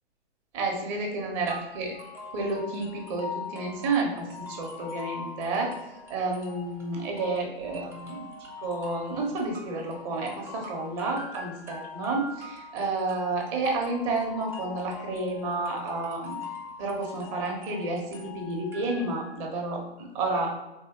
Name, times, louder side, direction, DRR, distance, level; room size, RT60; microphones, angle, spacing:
voice 1, 0.5-1.9 2.3-5.7 6.1-8.3 8.6-16.4 16.8-20.5, right 3 dB, 35° right, 1 dB, 1.2 m, -30 dB
sound 1, 1.5-19.4, left 4 dB, 10° right, 0.4 m, -42 dB
4.6 x 3.3 x 3.0 m, 1.0 s
hypercardioid pair, 125°, 33 cm